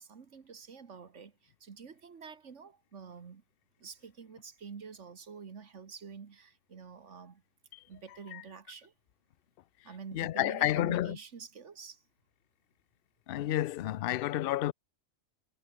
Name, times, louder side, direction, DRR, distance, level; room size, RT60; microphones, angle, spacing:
voice 1, 0.0-3.4 3.8-7.4 7.9-8.9 9.8-12.0, right 6 dB, 65° right, 1.8 m, -48 dB
voice 2, 10.1-11.2 13.3-14.7, left 14 dB, 60° left, 0.6 m, -30 dB
omnidirectional pair, 1.4 m